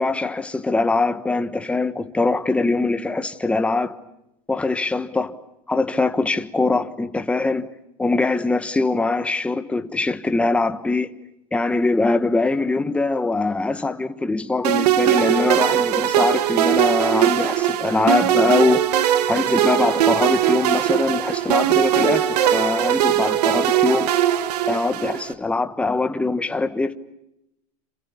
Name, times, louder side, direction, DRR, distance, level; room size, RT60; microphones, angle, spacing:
voice 1, 0.0-3.9 4.5-5.3 5.7-7.7 8.0-11.1 11.5-18.8 19.3-24.1 24.7-26.9, left 3 dB, 5° left, 1.2 m, -22 dB
sound 1, 14.6-25.3, right 11 dB, 85° right, 2.0 m, -20 dB
30.0 x 28.0 x 7.0 m
supercardioid pair, 155°, 20 cm